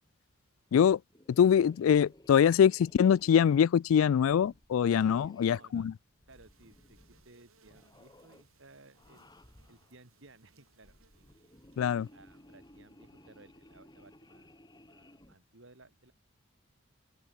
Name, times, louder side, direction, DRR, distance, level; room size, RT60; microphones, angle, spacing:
sound 1, 1.1-5.7 6.2-7.3 7.6-8.5 8.9-10.0 10.7-15.4, left 1 dB, 20° left, 2.7 m, -58 dB
voice 1, 1.3-5.9 11.8-12.1, left 8 dB, 75° left, 0.3 m, -24 dB
voice 2, 4.9-5.9 6.3-9.3 9.7-11.5 12.1-16.1, right 2 dB, 60° right, 2.7 m, -59 dB
sound 2, 6.3-13.8, right 4 dB, 80° right, 6.7 m, -69 dB
open air
head